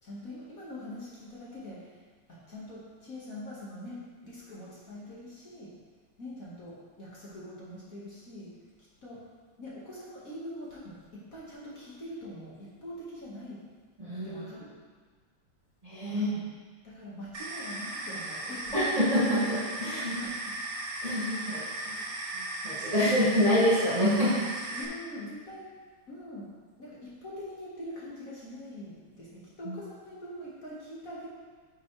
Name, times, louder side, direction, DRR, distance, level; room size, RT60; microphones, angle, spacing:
voice 1, 0.0-2.0 2.3-5.7 6.2-8.5 9.0-9.2 9.6-11.0 11.3-13.6 14.2-14.7 16.1-16.4 16.8-18.8 19.8-20.3 21.4-21.7 24.7-25.7 26.1-26.5 26.8-31.3, left 1 dB, 45° left, -7 dB, 2.1 m, -43 dB
voice 2, 14.0-14.4 15.8-16.3 18.7-20.2 21.0-22.0 22.3-24.4 29.6-29.8, equal, 20° right, -8 dB, 1.6 m, -27 dB
sound 1, 17.3-24.8, right 2 dB, 60° right, 1.7 m, -37 dB
10.5 x 6.3 x 3.3 m, 1.5 s
omnidirectional pair, 2.2 m